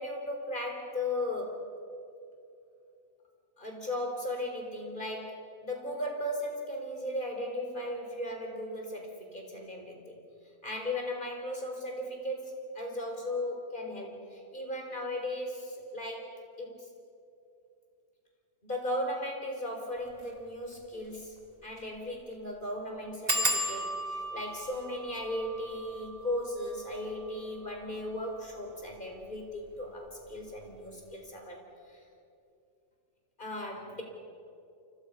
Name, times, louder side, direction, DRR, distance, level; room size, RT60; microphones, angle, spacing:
voice 1, 0.0-1.7 3.6-10.2 10.6-16.9 18.6-21.3 21.6-32.0 33.4-34.0, left 1 dB, 35° left, 2 dB, 4.5 m, -37 dB
sound 1, 20.1-20.3 20.7-20.8 21.0-21.1 21.7-21.9 22.2-22.3 23.3-28.5 29.2-29.7 30.1-30.4 30.7-30.8, right 1 dB, 45° right, 2.5 m, -36 dB
29.0 x 25.0 x 5.7 m, 2.6 s
omnidirectional pair, 1.4 m